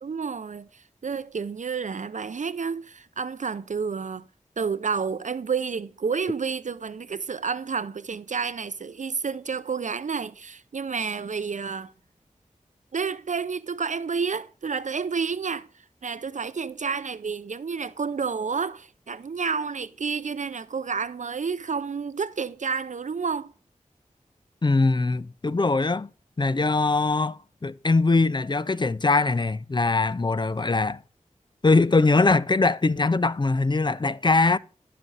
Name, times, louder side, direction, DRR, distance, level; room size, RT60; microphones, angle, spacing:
voice 1, 0.0-4.2 4.6-11.9 12.9-15.7 16.0-23.5, right 5 dB, 65° right, 0.5 m, -30 dB
voice 2, 24.6-26.1 26.4-31.0 31.6-34.6, left 3 dB, 35° left, 0.4 m, -22 dB
11.0 x 6.0 x 3.9 m
wide cardioid pair, 45°, 14 cm